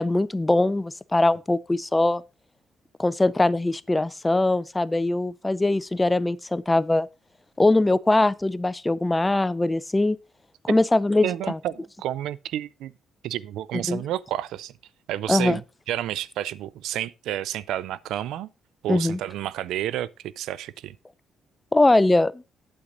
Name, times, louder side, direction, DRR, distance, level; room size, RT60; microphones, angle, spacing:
voice 1, 0.0-2.2 3.0-7.1 7.6-10.2 10.6-11.6 13.9-14.0 15.3-15.6 18.9-19.2 21.7-22.4, left 2 dB, 15° left, 0.4 m, -21 dB
voice 2, 11.2-12.9 13.2-14.7 15.1-18.5 18.8-21.0, right 12 dB, 85° right, 0.4 m, -30 dB
8.7 x 8.0 x 3.8 m
cardioid pair, 90°, 0 cm